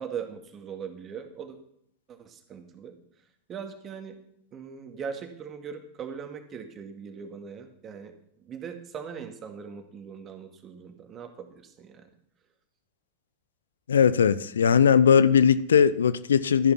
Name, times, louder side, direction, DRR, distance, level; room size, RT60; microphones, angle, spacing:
voice 1, 0.0-1.6 2.1-3.0 3.5-4.2 4.5-12.1, right 7 dB, 25° right, 2.2 m, -40 dB
voice 2, 13.9-16.7, left 7 dB, 65° left, 0.6 m, -19 dB
13.5 x 10.5 x 5.9 m
figure-of-eight pair, 90°, 0 cm